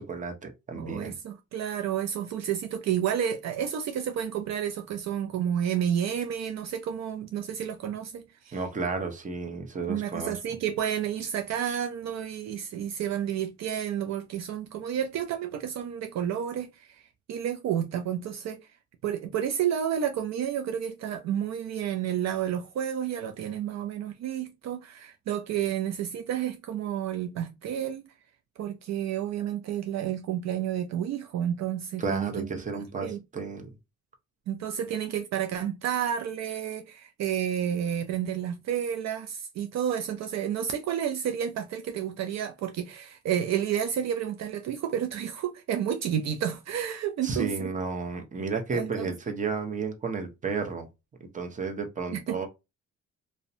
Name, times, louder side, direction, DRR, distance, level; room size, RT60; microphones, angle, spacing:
voice 1, 0.0-1.2 8.5-10.3 32.0-33.7 47.2-50.9 51.3-52.5, right 4 dB, 25° right, 0.7 m, -32 dB
voice 2, 0.7-8.6 9.9-18.6 19.0-28.1 28.6-32.5 32.7-33.2 34.5-47.7 48.7-49.1 52.1-52.4, right 9 dB, 65° right, 0.4 m, -30 dB
2.6 x 2.1 x 2.5 m
cardioid pair, 90°, 30 cm